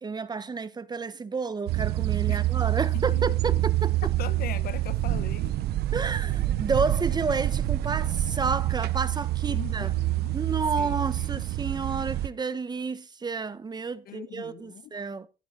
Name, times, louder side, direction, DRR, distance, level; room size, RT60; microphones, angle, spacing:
voice 1, 0.0-3.9 5.9-9.9 10.3-15.3, right 4 dB, 25° right, 1.2 m, -31 dB
sound 1, 1.7-12.3, right 15 dB, 75° right, 0.8 m, -27 dB
voice 2, 4.2-5.6 9.5-10.4 10.8-11.4 14.1-14.9, left 11 dB, 65° left, 1.2 m, -40 dB
14.5 x 11.0 x 4.1 m
cardioid pair, 110°, 17 cm